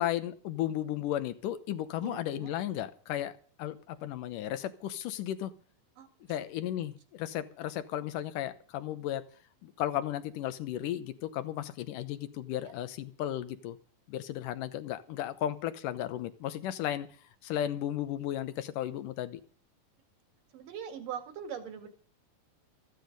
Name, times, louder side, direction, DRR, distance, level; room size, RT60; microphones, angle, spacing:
voice 1, 0.0-5.5 6.3-9.3 9.6-13.8 14.1-17.1 17.4-19.4, left 12 dB, 75° left, 12 dB, 2.4 m, -34 dB
voice 2, 2.0-2.5 6.0-6.1 20.5-21.9, right 8 dB, 75° right, 6 dB, 3.7 m, -41 dB
14.0 x 14.0 x 5.3 m, 0.43 s
omnidirectional pair, 3.9 m